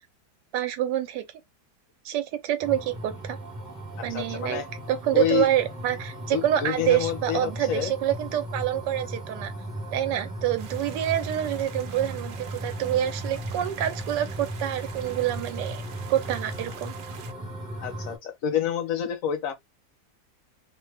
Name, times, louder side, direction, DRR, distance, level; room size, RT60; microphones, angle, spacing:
voice 1, 0.5-1.2 2.0-3.4 4.0-4.6 4.9-9.5 9.9-15.8 16.1-16.9, right 11 dB, 90° right, 1.2 m, -27 dB
sound 1, 2.6-18.2, right 1 dB, 15° right, 0.7 m, -37 dB
voice 2, 4.1-4.6 5.1-5.5 6.3-7.9 17.8-19.5, left 9 dB, 60° left, 1.0 m, -28 dB
sound 2, 10.6-17.3, right 7 dB, 65° right, 0.9 m, -47 dB
2.9 x 2.2 x 3.2 m
omnidirectional pair, 1.8 m